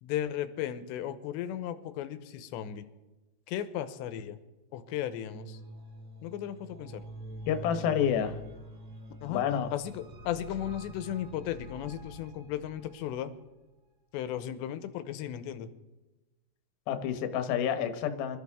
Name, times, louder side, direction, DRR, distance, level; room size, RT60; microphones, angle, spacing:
voice 1, 0.0-2.9 3.5-4.4 4.7-5.6 6.2-7.0 9.2-9.5 9.7-13.3 14.1-15.7, left 11 dB, 85° left, 11 dB, 3.1 m, -35 dB
sound 1, 5.0-13.3, equal, 70° right, 4.1 m, -46 dB
voice 2, 7.5-8.4 9.3-9.7 16.9-18.4, left 9 dB, 70° left, 8 dB, 2.7 m, -29 dB
25.5 x 13.0 x 3.6 m, 1.1 s
omnidirectional pair, 5.0 m